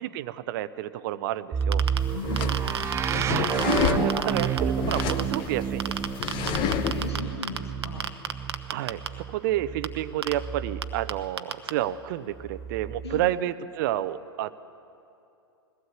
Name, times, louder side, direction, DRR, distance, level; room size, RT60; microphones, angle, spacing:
voice 1, 0.0-1.8 3.2-6.0 8.7-14.5, right 13 dB, 50° right, 16 dB, 0.7 m, -30 dB
sound 1, 1.5-11.3 12.3-13.4, right 7 dB, 20° right, 0.5 m, -30 dB
sound 2, 1.6-2.0 2.4-4.6 4.9-5.4 5.8-7.6 7.8-9.1 9.8-9.9 10.2-10.3 10.8-10.9 11.1-11.2 11.4-11.7, right 7 dB, 80° right, 0.9 m, -29 dB
sound 3, 2.0-7.1, left 8 dB, 35° left, 1.2 m, -30 dB
voice 2, 2.1-2.8 6.4-8.1 13.0-13.3, left 4 dB, 80° left, 3 dB, 2.4 m, -39 dB
21.0 x 16.5 x 8.1 m, 2.7 s
figure-of-eight pair, 100°, 13 cm